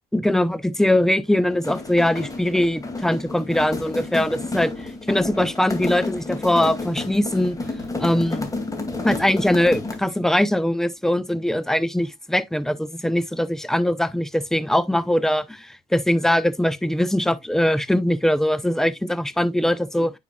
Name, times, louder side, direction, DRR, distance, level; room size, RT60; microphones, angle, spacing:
voice 1, 0.1-4.7 5.1-7.6 8.0-8.5 9.0-20.1, left 1 dB, 5° left, 0.7 m, -21 dB
sound 1, 1.5-10.2, left 3 dB, 20° left, 2.3 m, -31 dB
9.0 x 5.6 x 2.3 m
cardioid pair, 110°, 17 cm